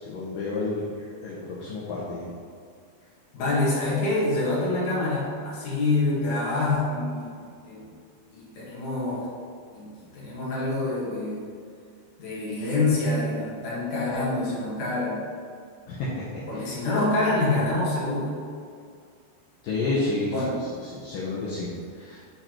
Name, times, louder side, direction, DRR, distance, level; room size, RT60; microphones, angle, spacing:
voice 1, 0.0-2.3 15.9-16.6 19.6-20.3 20.9-22.2, left 3 dB, 70° left, -7 dB, 2.1 m, -30 dB
voice 2, 3.3-7.9 8.3-9.3 9.7-11.5 12.2-15.3 16.5-18.3 20.3-20.6, left 2 dB, 55° left, -6 dB, 2.6 m, -26 dB
10.5 x 3.8 x 4.4 m, 2.3 s
omnidirectional pair, 5.0 m